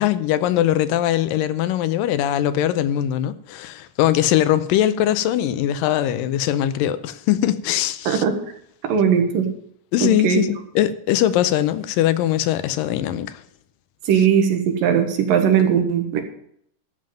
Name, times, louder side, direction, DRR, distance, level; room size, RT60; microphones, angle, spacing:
voice 1, 0.0-8.2 9.9-13.4, left 12 dB, 85° left, 2.3 m, -21 dB
voice 2, 8.1-8.4 8.8-9.5 10.0-10.4 14.1-16.2, right 8 dB, 75° right, 3.2 m, -19 dB
13.0 x 5.6 x 8.9 m
omnidirectional pair, 4.0 m